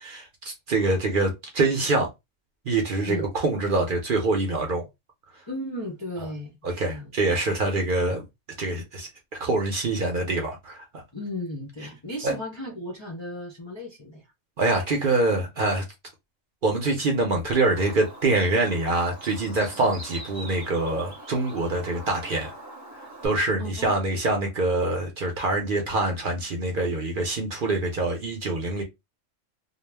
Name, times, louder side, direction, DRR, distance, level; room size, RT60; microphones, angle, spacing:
voice 1, 0.0-2.1 2.7-4.9 6.6-8.2 8.6-9.1 9.4-10.8 12.2-12.3 14.6-15.8 16.6-22.5 23.2-28.8, right 2 dB, 50° right, 0.7 m, -25 dB
voice 2, 5.5-7.1 11.1-14.2 19.7-19.9 23.6-24.0, left 1 dB, 40° left, 0.4 m, -35 dB
Bird, 17.5-23.3, right 1 dB, 15° right, 0.7 m, -43 dB
2.3 x 2.1 x 3.2 m
omnidirectional pair, 1.3 m